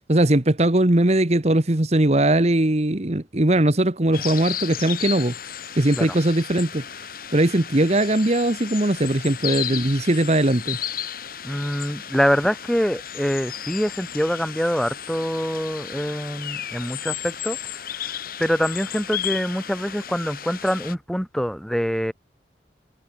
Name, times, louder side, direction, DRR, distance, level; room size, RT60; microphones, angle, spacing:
voice 1, 0.1-5.3 5.8-6.8 7.3-10.8, right 1 dB, 40° right, 1.3 m, -20 dB
sound 1, 4.1-20.9, left 10 dB, 55° left, 2.7 m, -34 dB
voice 2, 11.4-17.6 18.0-18.1 18.4-22.1, equal, 5° left, 3.2 m, -25 dB
head